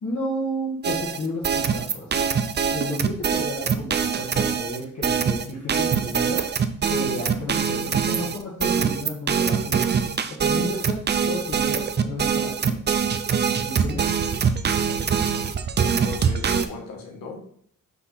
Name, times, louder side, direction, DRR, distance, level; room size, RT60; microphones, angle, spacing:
voice 1, 0.0-2.2 2.7-6.5 6.9-9.9 10.3-12.8 13.6-14.1, left 1 dB, 55° left, -4 dB, 1.6 m, -32 dB
sound 1, 0.8-16.6, right 6 dB, 35° right, 0.4 m, -23 dB
voice 2, 15.8-17.4, left 4 dB, 90° left, -1 dB, 1.8 m, -36 dB
6.0 x 5.7 x 3.9 m, 0.64 s
wide cardioid pair, 175°, 32 cm